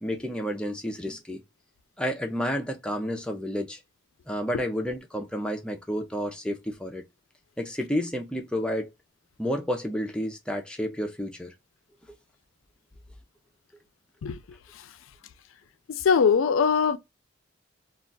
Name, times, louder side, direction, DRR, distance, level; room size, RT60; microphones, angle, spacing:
voice 1, 0.0-1.4 2.0-3.8 4.3-7.0 7.6-8.9 9.4-11.5, equal, 5° left, 0.4 m, -30 dB
voice 2, 15.9-17.0, left 6 dB, 80° left, 0.4 m, -21 dB
2.3 x 2.2 x 3.7 m
head